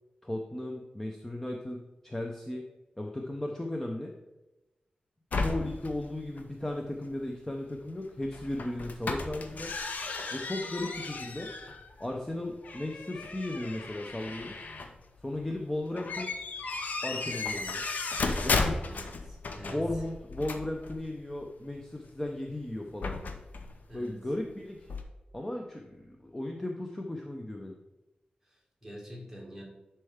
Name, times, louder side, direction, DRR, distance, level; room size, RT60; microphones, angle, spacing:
voice 1, 0.2-2.7 3.0-4.1 5.4-9.7 10.3-11.5 12.0-14.6 15.2-16.3 17.0-17.8 18.4-18.8 19.7-23.2 23.9-24.9 25.3-27.8, left 1 dB, 10° left, 2 dB, 0.6 m, -36 dB
sound 1, 5.3-7.0 7.8-7.9 8.1-12.3 12.6-15.7 15.9-21.5 21.9-23.8 24.1-24.2 24.5-24.6 24.8-25.0, left 3 dB, 70° left, 0.7 m, -35 dB
voice 2, 18.8-20.0 23.9-24.2 28.4-29.6, equal, 5° right, -3 dB, 2.0 m, -46 dB
9.8 x 4.4 x 3.5 m, 1.0 s
wide cardioid pair, 135°, 3 cm